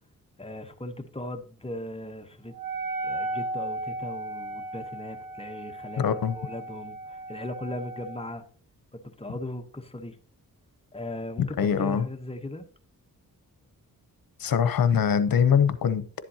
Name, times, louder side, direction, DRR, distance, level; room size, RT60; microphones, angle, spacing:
voice 1, 0.4-2.5 3.0-8.4 8.9-10.2 10.9-12.7, left 1 dB, 15° left, 1.0 m, -38 dB
Wind instrument woodwind instrument, 2.5-8.3, right 2 dB, 75° right, 1.6 m, -35 dB
voice 2, 6.0-6.3 11.4-12.1 14.4-16.2, left 7 dB, 70° left, 0.9 m, -23 dB
11.0 x 7.5 x 2.8 m
cardioid pair, 75°, 36 cm